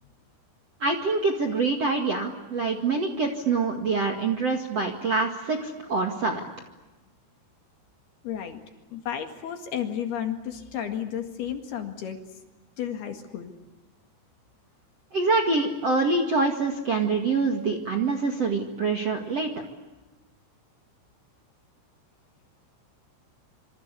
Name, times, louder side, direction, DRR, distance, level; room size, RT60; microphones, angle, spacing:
voice 1, 0.8-6.4 15.1-19.5, right 3 dB, 50° right, 4 dB, 2.0 m, -25 dB
voice 2, 8.2-8.6 8.9-12.2 12.8-13.5, left 9 dB, 60° left, 5 dB, 3.5 m, -32 dB
27.0 x 26.0 x 8.4 m, 1.1 s
omnidirectional pair, 5.9 m